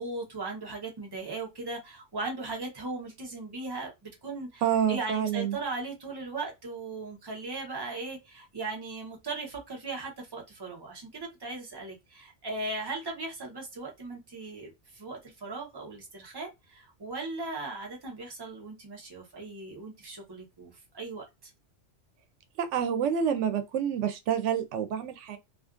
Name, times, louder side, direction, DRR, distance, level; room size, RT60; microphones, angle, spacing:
voice 1, 0.0-4.6 4.9-21.5, right 3 dB, 25° right, 0.8 m, -38 dB
voice 2, 4.6-5.6 22.6-25.4, right 8 dB, 90° right, 0.9 m, -28 dB
2.5 x 2.3 x 2.4 m
omnidirectional pair, 1.2 m